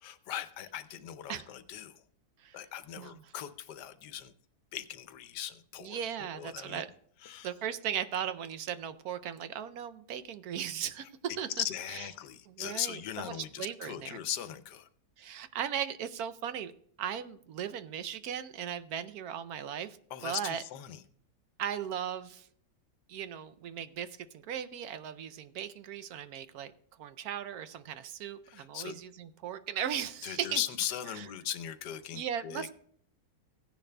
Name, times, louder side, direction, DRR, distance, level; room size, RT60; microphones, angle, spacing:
voice 1, 0.0-2.0 2.5-4.3 4.7-6.8 7.2-7.5 11.6-14.9 20.1-21.0 28.5-29.0 30.2-32.7, left 11 dB, 85° left, 13 dB, 1.3 m, -39 dB
voice 2, 5.8-6.9 7.4-11.1 11.4-11.5 12.5-13.3 13.6-14.2 15.2-16.7 17.0-20.0 20.2-20.6 21.6-22.5 23.1-26.7 27.0-30.6 31.1-31.3 32.1-32.7, right 9 dB, 70° right, 12 dB, 1.0 m, -37 dB
16.5 x 10.0 x 2.2 m, 0.63 s
omnidirectional pair, 1.8 m